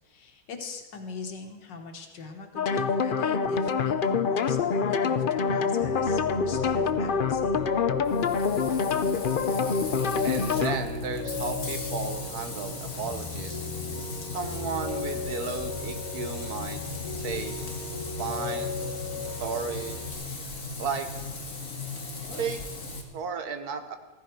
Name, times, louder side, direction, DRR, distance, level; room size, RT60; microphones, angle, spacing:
voice 1, 0.0-7.7, left 4 dB, 90° left, 4 dB, 2.1 m, -41 dB
sound 1, 2.6-10.8, left 5 dB, 70° left, 0.5 m, -26 dB
Piano, 5.8-20.1, left 4 dB, 15° left, 6.0 m, -37 dB
Frying (food), 8.0-23.0, left 3 dB, 50° left, 2.4 m, -37 dB
voice 2, 10.2-13.7 14.3-16.8 17.1-17.5 18.2-18.8 19.4-20.0 20.8-21.1 22.4-22.6 23.1-24.0, right 5 dB, 60° right, 7 dB, 1.8 m, -34 dB
15.5 x 15.0 x 4.6 m, 1.3 s
omnidirectional pair, 1.9 m